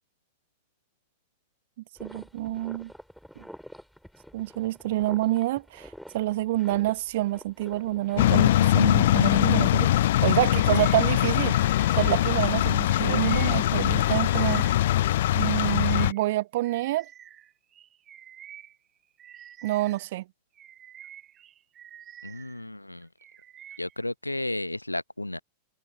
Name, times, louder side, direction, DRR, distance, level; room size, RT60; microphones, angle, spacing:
sound 1, 2.0-9.1, equal, ahead, 6.2 m, -47 dB
voice 1, 2.0-2.9 3.4-3.5 4.3-11.6 12.0-14.6 15.3-17.1 19.6-20.2, right 16 dB, 55° right, 1.6 m, -27 dB
sound 2, 8.2-16.1, left 13 dB, 55° left, 0.7 m, -22 dB
Bird vocalization bird call bird song, 10.5-15.0 15.4-20.1 20.5-22.6 23.0-24.0, right 10 dB, 30° right, 6.1 m, -49 dB
voice 2, 13.1-13.9 22.2-23.1 23.8-25.4, left 1 dB, 85° left, 0.9 m, -33 dB
figure-of-eight pair, 90°, 0 cm